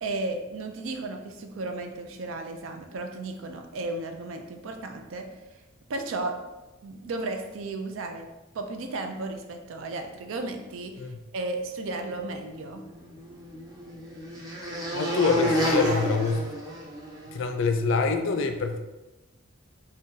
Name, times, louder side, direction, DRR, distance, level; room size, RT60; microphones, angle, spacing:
voice 1, 0.0-5.3 5.9-6.4 6.8-8.3 8.5-12.8, right 2 dB, 75° right, 5 dB, 0.4 m, -34 dB
sound 1, 12.7-17.3, equal, 20° right, 0.6 m, -29 dB
voice 2, 14.9-16.4 17.3-18.8, left 4 dB, 70° left, 6 dB, 0.4 m, -25 dB
3.7 x 2.2 x 2.7 m, 1.1 s
head